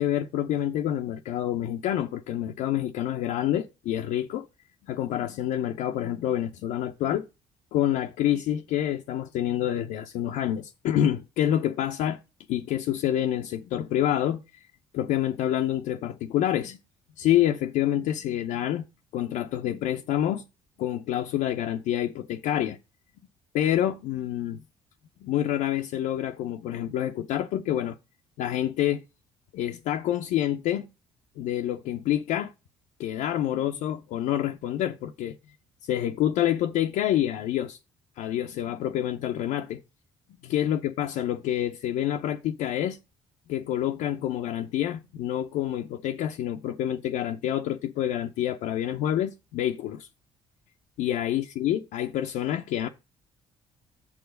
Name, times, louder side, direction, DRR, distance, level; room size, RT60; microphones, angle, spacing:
voice 1, 0.0-4.5 4.9-7.3 7.7-12.2 12.5-14.4 14.9-16.8 17.2-18.9 19.1-20.5 20.8-22.8 23.5-24.6 25.2-28.0 28.4-29.0 29.5-30.9 31.4-32.5 33.0-35.4 35.8-37.8 38.2-39.8 40.4-43.0 43.5-50.1 51.0-52.9, left 11 dB, 70° left, 0.5 m, -27 dB
7.2 x 4.8 x 5.1 m
hypercardioid pair, 55°, 13 cm